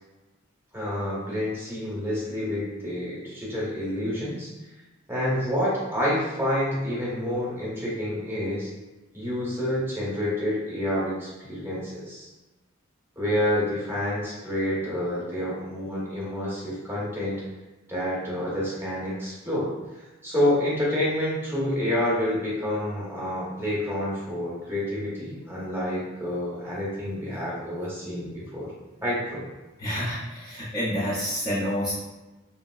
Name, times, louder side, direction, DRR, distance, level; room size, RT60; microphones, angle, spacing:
voice 1, 0.7-4.5 5.1-8.7 9.1-12.3 13.2-17.4 17.9-28.7 29.0-29.4, left 1 dB, 10° right, -7 dB, 0.9 m, -28 dB
voice 2, 29.8-31.9, equal, 20° left, -9 dB, 0.5 m, -28 dB
2.9 x 2.6 x 2.3 m, 1.1 s
head